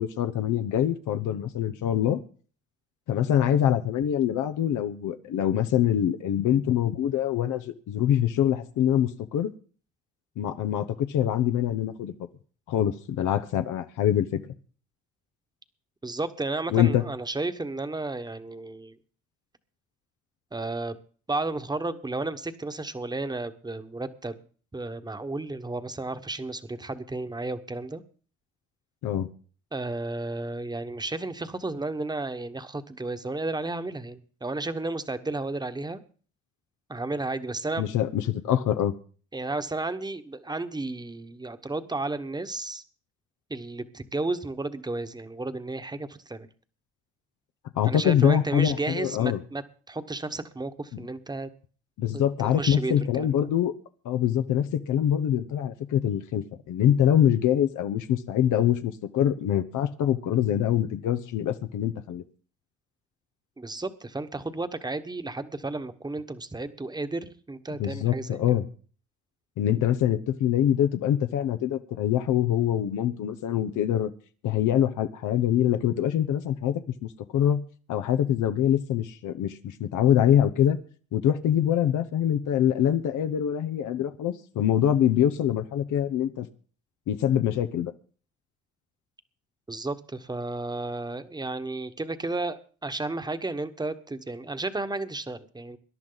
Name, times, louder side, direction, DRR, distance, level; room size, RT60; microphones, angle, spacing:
voice 1, 0.0-2.2 3.1-9.5 10.4-12.1 12.7-14.4 16.7-17.0 29.0-29.3 37.8-38.9 47.8-49.4 52.0-53.7 54.0-62.2 67.8-68.6 69.6-74.1 74.4-76.7 77.0-77.6 77.9-80.8 81.1-86.5 87.1-87.9, left 10 dB, 80° left, 7 dB, 0.9 m, -24 dB
voice 2, 16.0-19.0 20.5-21.0 21.3-24.4 24.7-28.0 29.7-36.0 36.9-37.9 39.3-42.8 43.5-46.5 47.8-51.5 52.1-53.5 63.6-68.6 89.7-95.8, right 2 dB, 15° right, 10 dB, 1.2 m, -33 dB
21.5 x 11.0 x 4.0 m, 0.42 s
cardioid pair, 90°, 30 cm